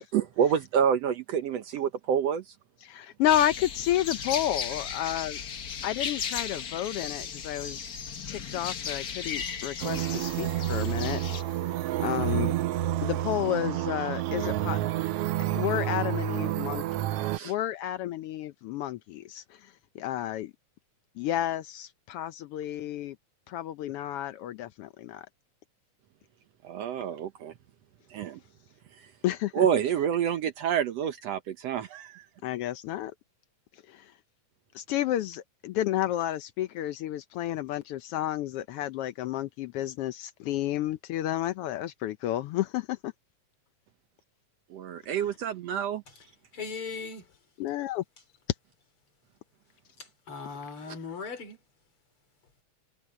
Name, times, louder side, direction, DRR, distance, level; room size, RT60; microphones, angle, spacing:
voice 1, 0.1-2.5 17.3-17.5 26.6-27.5 28.1-28.4 29.6-32.3 44.7-46.0, right 8 dB, 65° right, 1.8 m, -28 dB
voice 2, 2.8-5.4 5.8-7.8 8.3-12.5 13.0-14.8 15.4-16.8 17.4-20.5 21.2-23.2 23.5-25.3 29.2-29.7 32.4-33.1 33.9-34.1 34.7-43.1 47.6-48.0 50.8-51.0, left 12 dB, 85° left, 1.2 m, -31 dB
sound 1, 3.3-11.4, left 7 dB, 70° left, 0.8 m, -36 dB
sound 2, 9.8-17.4, right 13 dB, 90° right, 1.3 m, -29 dB
voice 3, 46.5-47.2 50.3-51.6, left 5 dB, 45° left, 4.5 m, -38 dB
omnidirectional pair, 3.5 m